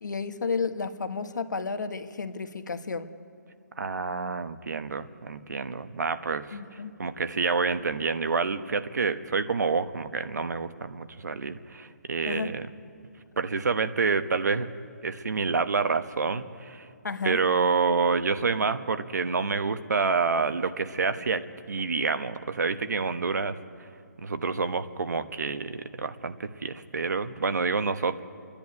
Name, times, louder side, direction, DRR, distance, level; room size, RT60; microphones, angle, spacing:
voice 1, 0.0-3.1 6.5-6.9 12.2-12.6 17.0-17.4, left 4 dB, 85° left, 9 dB, 1.3 m, -32 dB
voice 2, 3.8-6.6 7.0-12.7 13.4-14.7 15.0-16.9 17.2-21.4 21.7-23.6 24.2-28.2, right 4 dB, 70° right, 10 dB, 1.1 m, -28 dB
28.0 x 10.5 x 9.5 m, 2.4 s
hypercardioid pair, 170°, 10 cm